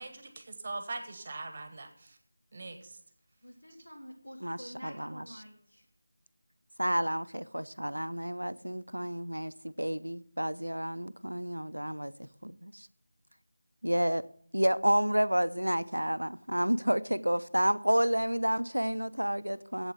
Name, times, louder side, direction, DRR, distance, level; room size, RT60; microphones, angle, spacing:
voice 1, 0.0-2.2 2.5-3.0, right 2 dB, 30° right, 1.3 m, -41 dB
voice 2, 3.4-5.9, equal, 80° left, 3.1 m, -48 dB
voice 3, 4.4-5.2 6.8-12.1 12.4-12.9 13.8-14.3 14.5-19.9, equal, 85° right, 0.6 m, -30 dB
8.1 x 8.0 x 7.8 m
figure-of-eight pair, 165°, 0 cm